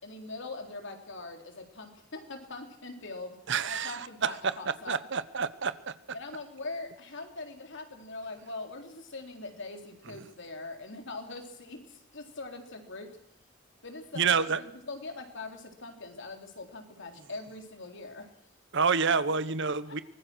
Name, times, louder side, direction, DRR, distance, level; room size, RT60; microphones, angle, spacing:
voice 1, 0.0-3.4 3.6-5.0 6.1-13.1 13.8-18.3 19.8-20.0, left 3 dB, 65° left, 4 dB, 3.7 m, -42 dB
voice 2, 3.5-5.9 14.2-14.6 18.7-20.0, right 5 dB, 65° right, 14 dB, 1.2 m, -28 dB
24.0 x 20.0 x 6.3 m, 0.74 s
head